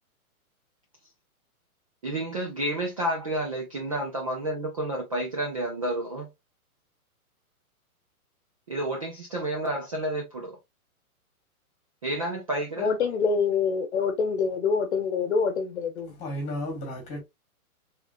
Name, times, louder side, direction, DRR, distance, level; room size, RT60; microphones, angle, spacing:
voice 1, 2.0-6.3 8.7-10.6 12.0-12.9, right 1 dB, 25° right, 0.5 m, -30 dB
voice 2, 12.8-16.1, left 5 dB, 50° left, 1.0 m, -25 dB
voice 3, 16.1-17.2, left 1 dB, 15° left, 2.0 m, -33 dB
3.7 x 3.6 x 2.6 m
hypercardioid pair, 160°, 44 cm